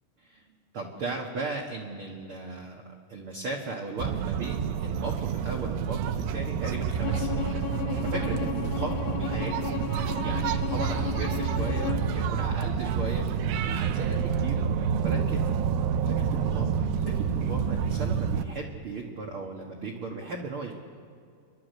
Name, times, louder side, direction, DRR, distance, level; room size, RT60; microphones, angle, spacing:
voice 1, 0.7-2.8 3.1-7.5 8.0-9.8 10.2-15.5 16.0-20.7, right 3 dB, 70° right, 0 dB, 1.3 m, -36 dB
sound 1, 4.0-18.5, right 7 dB, 85° right, 2.9 m, -28 dB
Bowed string instrument, 7.0-12.1, left 11 dB, 90° left, 2.9 m, -35 dB
27.5 x 11.5 x 8.2 m, 2.3 s
omnidirectional pair, 4.6 m